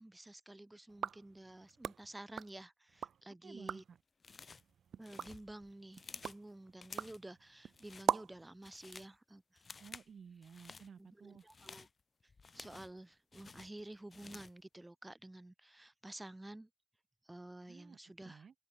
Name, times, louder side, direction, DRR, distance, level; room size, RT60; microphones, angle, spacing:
voice 1, 0.0-3.8 5.0-9.6 11.0-11.9 12.2-16.7 17.2-18.5, right 1 dB, 10° right, 3.2 m, -51 dB
sound 1, 0.9-3.2 3.5-4.0 4.5-8.5, right 8 dB, 75° right, 0.7 m, -42 dB
voice 2, 3.4-4.0 9.8-11.5 17.7-18.0 18.2-18.5, right 6 dB, 55° right, 5.7 m, -54 dB
sound 2, 4.2-4.7 5.0-6.4 6.8-7.3 7.7-8.1 8.5-9.2 9.6-10.1 10.4-10.9 11.4-13.0 13.3-14.6, left 4 dB, 40° left, 5.0 m, -53 dB
open air
wide cardioid pair, 115°, 0 cm